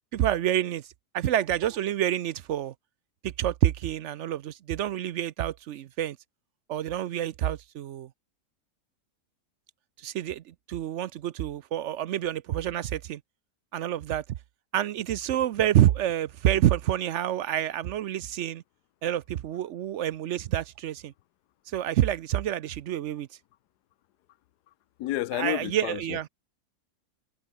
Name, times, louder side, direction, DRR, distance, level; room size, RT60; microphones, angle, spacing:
voice 1, 0.1-0.9 1.1-2.7 3.2-6.2 6.7-8.1 10.0-13.2 13.7-14.2 14.7-18.6 19.0-21.1 21.7-23.3 25.3-26.3, right 12 dB, 65° right, 0.7 m, -28 dB
voice 2, 25.0-26.3, left 14 dB, 80° left, 1.2 m, -31 dB
omnidirectional pair, 1.7 m